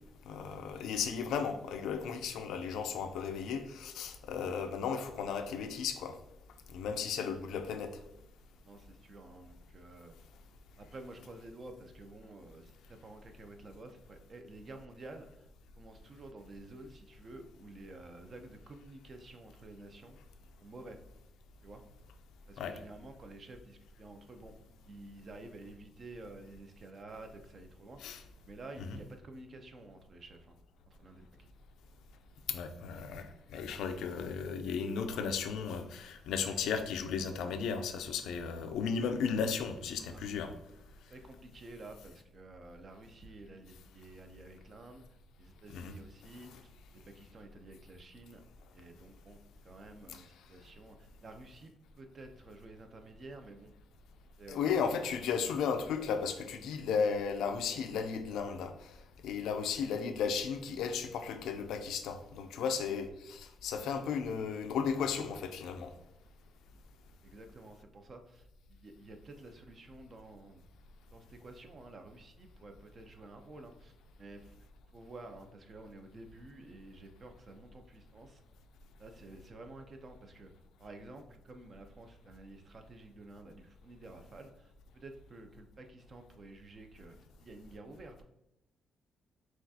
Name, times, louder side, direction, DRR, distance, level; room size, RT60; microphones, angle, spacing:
voice 1, 0.3-6.2 6.7-8.0 22.6-22.7 28.0-28.2 28.9-29.0 32.5-40.5 45.7-45.9 46.5-46.6 50.1-50.2 54.5-58.9 59.2-65.9, left 6 dB, 80° left, 7 dB, 0.4 m, -35 dB
voice 2, 8.6-10.1 10.8-15.5 15.8-20.2 20.6-21.0 21.6-21.8 22.5-24.5 24.9-30.6 30.9-31.3 40.1-40.3 41.1-45.0 45.4-48.4 48.7-49.4 49.6-53.7 54.4-54.8 67.2-70.6 71.1-74.6 74.9-78.4 79.0-80.5 80.8-88.2, right 2 dB, 45° right, 6 dB, 0.6 m, -51 dB
5.9 x 2.4 x 2.7 m, 0.87 s
cardioid pair, 90°, 0 cm